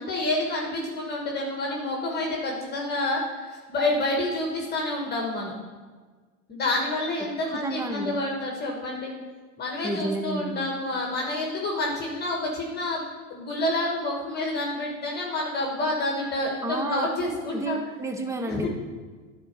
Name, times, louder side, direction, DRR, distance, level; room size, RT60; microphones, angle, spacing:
voice 1, 0.0-5.5 6.5-9.1 9.6-13.0 13.3-17.8 18.5-18.7, left 2 dB, 25° left, -1 dB, 1.4 m, -28 dB
voice 2, 7.2-8.2 9.8-10.5 16.6-17.1 17.5-18.7, right 2 dB, 5° right, 5 dB, 0.7 m, -31 dB
10.0 x 4.3 x 5.5 m, 1.4 s
hypercardioid pair, 110°, 42 cm